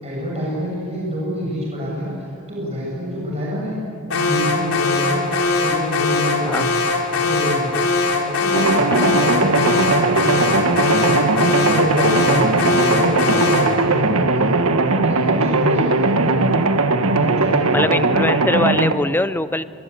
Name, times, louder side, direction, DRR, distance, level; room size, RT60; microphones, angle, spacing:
voice 1, 0.0-2.1 2.5-5.3 5.6-6.7 7.1-7.7 8.0-11.2 11.4-12.6 12.9-14.5 14.9-16.6 17.0-18.0 18.5-18.9, equal, 30° right, -4 dB, 7.1 m, -27 dB
Alarm, 4.1-13.8, left 3 dB, 85° left, 3.7 m, -21 dB
sound 1, 5.7-6.7, left 1 dB, 50° left, 6.0 m, -35 dB
sound 2, 8.5-18.9, right 3 dB, 90° right, 1.4 m, -18 dB
voice 2, 17.7-19.6, left 1 dB, 10° left, 14 dB, 0.5 m, -21 dB
27.0 x 22.5 x 8.4 m, 2.7 s
head